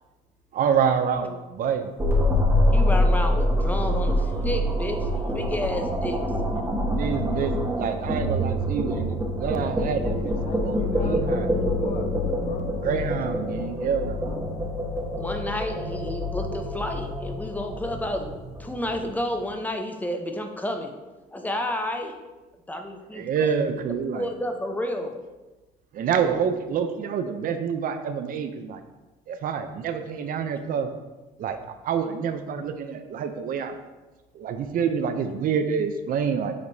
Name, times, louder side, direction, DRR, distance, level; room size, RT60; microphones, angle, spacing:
voice 1, 0.5-1.9 6.8-10.4 10.6-11.5 12.7-14.3 23.1-24.3 25.9-28.8 29.3-30.9 31.4-31.6 31.8-33.8 34.3-36.5, right 7 dB, 55° right, 8 dB, 0.6 m, -27 dB
sound 1, 2.0-19.2, left 1 dB, 15° right, 1.4 m, -25 dB
voice 2, 2.7-6.2 15.1-20.9 21.3-22.2 22.7-23.3 24.1-25.2, left 1 dB, 10° left, 5 dB, 0.7 m, -31 dB
voice 3, 3.6-5.8 6.4-6.7 9.8-12.8 14.3-14.8 26.5-26.6 34.8-35.3, left 4 dB, 45° left, 6 dB, 0.7 m, -43 dB
7.8 x 5.1 x 2.7 m, 1.2 s
cardioid pair, 110°, 17 cm